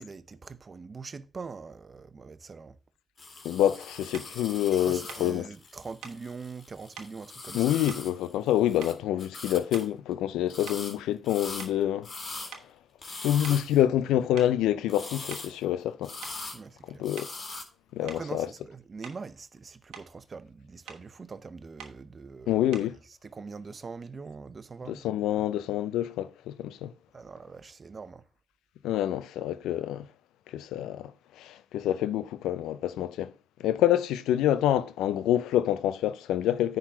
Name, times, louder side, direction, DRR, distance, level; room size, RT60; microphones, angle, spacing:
voice 1, 0.0-2.8 4.7-7.8 16.5-17.0 18.0-22.7 23.2-25.1 25.4-25.5 27.1-28.3, right 4 dB, 45° right, 0.8 m, -43 dB
sound 1, 3.2-8.9 9.2-9.9 10.5-10.9 11.2-12.5 13.0-13.8 14.9-15.6 16.0-16.7 17.0-17.6, left 3 dB, 55° left, 2.5 m, -41 dB
voice 2, 3.4-5.5 7.5-12.1 13.2-16.1 16.9-17.3 17.9-18.5 22.5-23.0 24.9-26.9 28.8-30.1 30.5-31.1 31.4-33.3 33.6-36.8, left 12 dB, 85° left, 0.4 m, -27 dB
sound 2, 4.1-4.4 5.1-5.3 6.0-6.3 7.0-7.2 7.9-8.5 8.8-9.2 9.7-10.1 10.7-12.2 12.5-12.7 13.4-13.7 14.4-14.6 15.1-15.6 16.2-16.4 17.2-17.4 18.1-18.3 19.0-19.3 19.7-20.1 20.9-21.1 21.8-22.0 22.7-23.0, right 7 dB, 85° right, 1.2 m, -47 dB
9.9 x 4.0 x 5.7 m
supercardioid pair, 45°, 0 cm